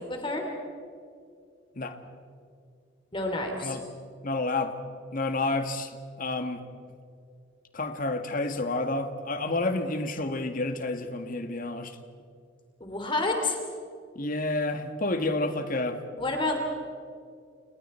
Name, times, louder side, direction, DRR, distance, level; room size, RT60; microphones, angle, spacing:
voice 1, 0.1-0.4 3.1-3.8 12.8-13.6 16.2-16.6, left 2 dB, 25° left, 2 dB, 3.1 m, -29 dB
voice 2, 4.2-4.8 5.1-5.9 6.2-6.6 7.7-11.9 14.2-16.0, left 2 dB, 45° left, 7 dB, 1.8 m, -29 dB
29.5 x 29.0 x 4.5 m, 2.3 s
head